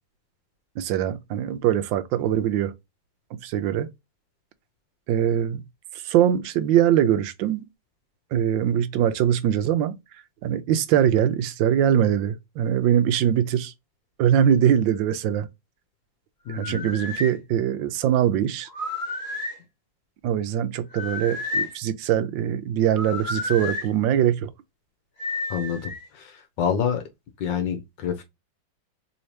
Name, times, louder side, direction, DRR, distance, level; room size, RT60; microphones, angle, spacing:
voice 1, 0.8-2.7 3.4-3.9 5.1-5.6 6.0-7.6 8.3-10.0 10.4-13.7 14.2-15.5 16.5-18.7 20.2-24.5, right 10 dB, 85° right, 1.3 m, -22 dB
voice 2, 16.5-16.9 25.5-25.9 26.6-27.0 27.4-28.3, left 7 dB, 75° left, 1.4 m, -27 dB
sound 1, 16.5-17.3 18.7-19.6 20.9-21.8 22.9-23.9 25.2-26.1, left 2 dB, 35° left, 1.7 m, -31 dB
3.5 x 3.1 x 2.7 m
omnidirectional pair, 2.1 m